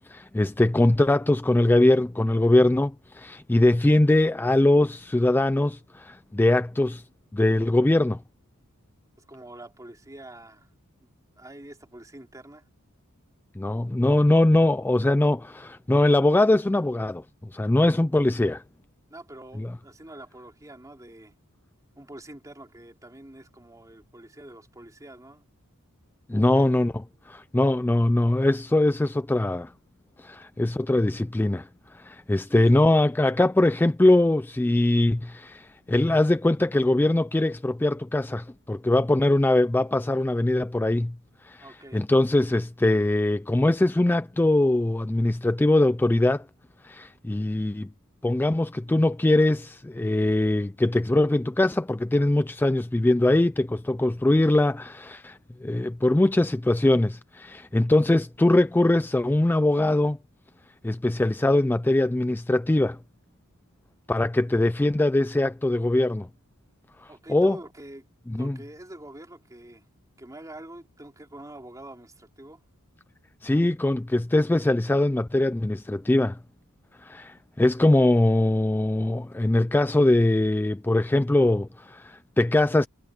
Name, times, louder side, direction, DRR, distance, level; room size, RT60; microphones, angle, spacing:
voice 1, 0.1-7.0 7.3-8.2 13.6-17.2 17.5-18.6 19.6-19.7 26.3-29.7 30.2-31.7 31.9-41.1 41.4-46.4 46.8-47.9 48.2-60.2 60.8-63.0 64.1-66.3 67.0-67.6 68.3-68.6 73.4-76.4 77.0-82.9, left 1 dB, 10° left, 0.3 m, -22 dB
voice 2, 9.2-10.7 11.0-11.1 11.4-12.7 19.1-21.3 21.9-25.4 26.3-26.7 32.5-32.7 41.6-42.0 67.1-68.1 68.4-69.8 70.2-72.6, right 1 dB, 15° right, 3.1 m, -45 dB
head